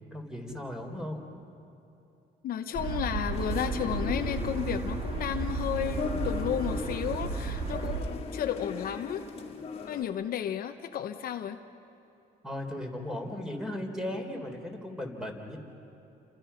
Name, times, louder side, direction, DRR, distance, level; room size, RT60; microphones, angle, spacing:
voice 1, 0.1-1.2 12.4-15.6, left 1 dB, 5° right, 2 dB, 3.9 m, -36 dB
voice 2, 2.4-9.2 9.9-11.6, left 9 dB, 60° left, 7 dB, 1.0 m, -33 dB
sound 1, 2.7-8.0, right 4 dB, 35° right, 2.7 m, -33 dB
sound 2, 3.3-10.0, left 5 dB, 35° left, 2.2 m, -38 dB
30.0 x 26.0 x 5.8 m, 2.9 s
cardioid pair, 110°, 17 cm